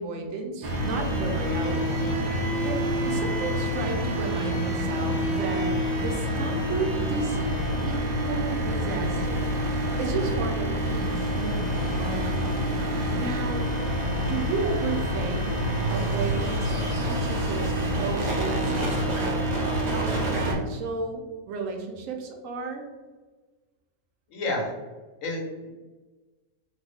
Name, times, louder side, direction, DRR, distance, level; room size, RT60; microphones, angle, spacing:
voice 1, 0.0-2.1 2.6-7.6 7.8-9.5 10.0-11.9 13.1-13.7 14.0-15.5 15.9-19.5 19.9-22.8, right 3 dB, 80° right, 3 dB, 1.0 m, -33 dB
sound 1, 0.6-20.5, equal, 55° right, 0.5 m, -27 dB
voice 2, 24.3-24.7 25.2-25.7, left 2 dB, 80° left, -1 dB, 1.2 m, -30 dB
2.6 x 2.4 x 3.4 m, 1.3 s
omnidirectional pair, 1.4 m